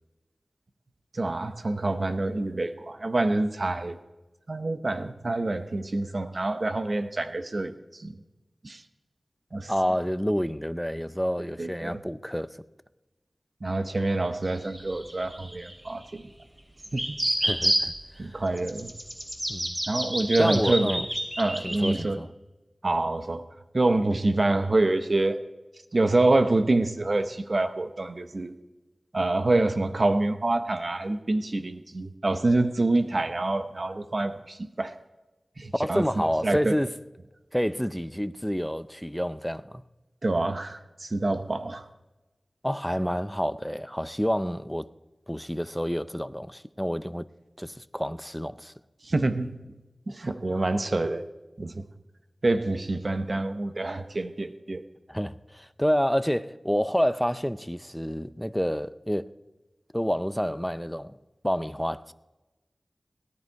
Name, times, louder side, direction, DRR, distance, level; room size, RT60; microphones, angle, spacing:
voice 1, 1.1-4.0 4.5-8.1 8.6-8.8 9.5-9.7 11.6-12.0 13.6-16.3 16.9-17.2 18.2-18.9 19.9-21.0 21.4-22.2 22.8-23.4 23.7-25.4 25.9-28.5 29.1-34.9 35.6-36.0 36.4-36.7 40.2-41.8 49.0-49.5 50.1-51.2 51.6-51.9 52.4-54.8, right 2 dB, 55° right, 0.8 m, -26 dB
voice 2, 9.7-12.6 17.4-18.4 19.5-19.8 20.4-21.1 21.6-22.3 35.8-36.9 37.5-39.8 42.6-44.9 45.3-47.3 47.6-48.7 55.1-59.3 59.9-61.1 61.4-62.1, equal, 5° left, 0.5 m, -28 dB
sound 1, 14.4-16.1 16.8-17.9 18.6-21.9, right 1 dB, 30° right, 3.0 m, -29 dB
17.5 x 10.5 x 4.6 m
cardioid pair, 45°, 0 cm